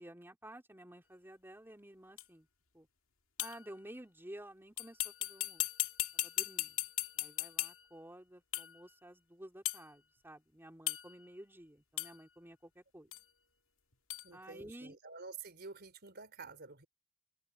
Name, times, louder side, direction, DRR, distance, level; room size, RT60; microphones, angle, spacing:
voice 1, 0.0-2.5 2.7-2.9 3.4-5.7 6.1-6.8 7.2-13.1 14.3-15.0, right 1 dB, 10° right, 3.6 m, -52 dB
sound 1, 2.2-2.3 3.4-3.7 4.8-8.0 8.5-8.8 9.6-9.9 10.9-11.3 12.0-12.2 13.1-13.2 14.1-14.3, left 15 dB, 75° left, 2.2 m, -38 dB
voice 2, 14.2-16.9, right 4 dB, 55° right, 4.1 m, -49 dB
open air
head